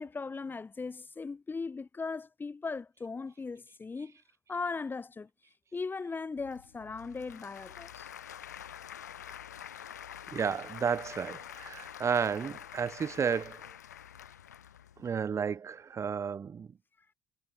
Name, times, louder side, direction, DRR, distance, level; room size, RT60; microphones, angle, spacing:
voice 1, 0.0-4.2 4.5-5.3 5.7-8.1, left 4 dB, 20° left, 1.1 m, -38 dB
Applause / Crowd, 6.4-15.1, left 9 dB, 85° left, 4.5 m, -47 dB
voice 2, 10.3-13.6 15.0-16.7, right 6 dB, 35° right, 0.8 m, -32 dB
hypercardioid pair, 60°, 9 cm